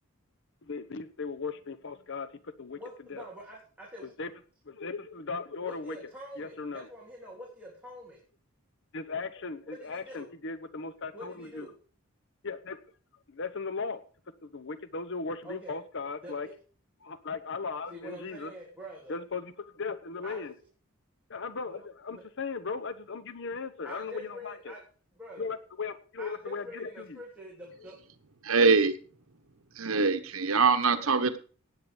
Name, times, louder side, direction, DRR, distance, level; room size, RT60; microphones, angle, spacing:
voice 1, 0.7-2.8 3.1-3.2 4.2-4.3 4.7-6.0 6.4-6.9 8.9-11.7 12.4-12.8 13.3-14.0 14.4-16.5 17.0-18.5 19.1-20.5 21.3-24.7 25.4-27.2, left 4 dB, 60° left, 12 dB, 0.9 m, -37 dB
voice 2, 2.8-4.1 5.6-8.2 9.6-10.3 11.1-11.8 15.4-15.8 16.2-16.5 17.9-19.2 20.2-20.4 21.6-21.8 22.1-22.2 23.8-24.8 25.2-25.5 26.2-28.0, equal, 5° right, -4 dB, 3.4 m, -45 dB
voice 3, 28.4-28.9 29.8-31.4, right 4 dB, 75° right, 9 dB, 1.3 m, -23 dB
18.0 x 8.7 x 5.2 m, 0.41 s
head